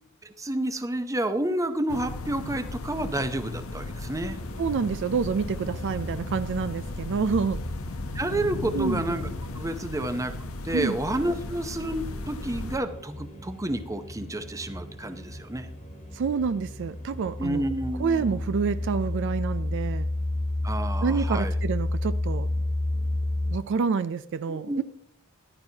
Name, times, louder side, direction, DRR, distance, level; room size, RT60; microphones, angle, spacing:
voice 1, 0.2-4.4 8.1-9.3 9.5-15.7 17.4-18.5 20.6-21.6 24.5-24.8, right 1 dB, 15° right, 9 dB, 0.7 m, -30 dB
sound 1, 1.9-12.8, left 2 dB, 75° left, 0.9 m, -36 dB
sound 2, 4.3-23.6, left 1 dB, 35° left, 1.5 m, -33 dB
voice 2, 4.6-7.6 8.7-9.0 10.7-11.0 16.1-17.6 18.0-20.1 21.0-22.5 23.5-24.8, right 5 dB, 60° right, 14 dB, 0.4 m, -28 dB
14.0 x 10.5 x 2.8 m, 0.74 s
head